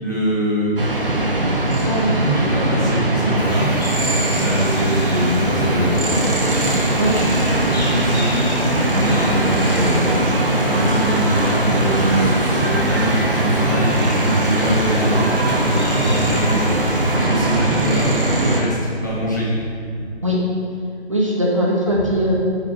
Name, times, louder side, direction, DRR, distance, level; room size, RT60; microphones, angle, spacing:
voice 1, 0.0-0.7 2.2-3.7 4.4-5.9 7.7-8.4 8.9-10.1 10.6-12.3 12.6-13.1 13.4-14.0 14.3-16.8 17.2-18.1 18.5-18.8 19.0-19.6 19.9-20.0 21.9-22.1, equal, 15° left, -9 dB, 0.7 m, -23 dB
sound 1, 0.8-18.6, right 1 dB, 55° right, 1.0 m, -20 dB
voice 2, 1.8-2.1 7.0-7.1 20.2-20.4 21.1-22.3, equal, 30° right, -5 dB, 0.6 m, -20 dB
sound 2, 3.3-17.2, left 1 dB, 40° left, 1.1 m, -35 dB
6.1 x 4.8 x 4.1 m, 2.2 s
figure-of-eight pair, 155°, 33 cm